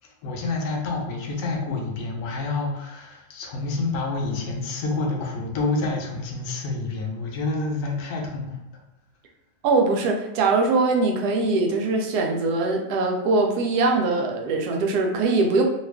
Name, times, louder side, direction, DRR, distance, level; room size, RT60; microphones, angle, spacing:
voice 1, 0.2-8.5, left 3 dB, 75° left, 0 dB, 1.2 m, -28 dB
voice 2, 9.6-15.6, right 3 dB, 85° right, 2 dB, 1.2 m, -22 dB
2.9 x 2.3 x 3.3 m, 0.88 s
omnidirectional pair, 1.6 m